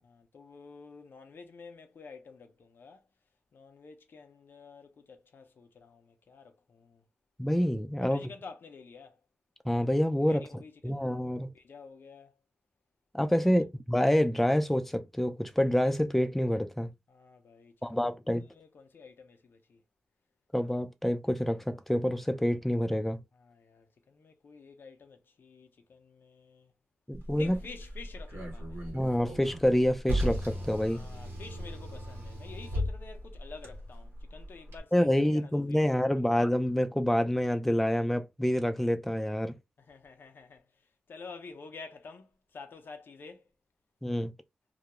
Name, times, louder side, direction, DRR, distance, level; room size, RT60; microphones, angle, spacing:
voice 1, 0.0-3.1 3.5-7.0 8.0-9.2 10.3-11.2 11.5-12.4 13.3-13.6 17.1-19.8 23.3-26.7 27.4-28.8 30.9-36.2 39.8-43.5, left 4 dB, 70° left, 0.5 m, -50 dB
voice 2, 7.4-8.3 9.7-11.5 13.1-16.9 17.8-18.5 20.5-23.2 27.1-27.6 28.9-31.0 34.9-39.5 44.0-44.3, equal, 5° left, 0.4 m, -27 dB
Car, 27.1-34.8, equal, 80° right, 0.9 m, -37 dB
2.3 x 2.0 x 2.9 m
cardioid pair, 45°, 4 cm